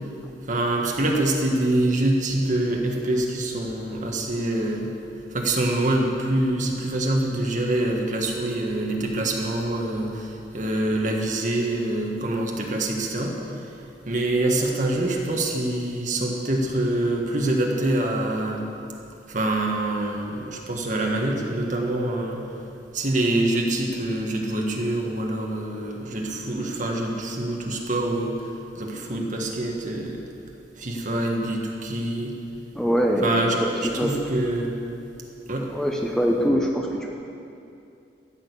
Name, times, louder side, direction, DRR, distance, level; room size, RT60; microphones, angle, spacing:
voice 1, 0.5-4.9 5.3-13.8 14.0-18.7 19.3-22.4 22.9-28.5 28.7-30.2 30.8-32.3 33.2-34.8 35.5-35.7, right 1 dB, 45° right, 0 dB, 1.6 m, -25 dB
voice 2, 32.7-33.3 33.6-34.1 35.7-37.1, equal, 5° left, 0 dB, 0.8 m, -23 dB
14.0 x 6.5 x 8.2 m, 2.7 s
head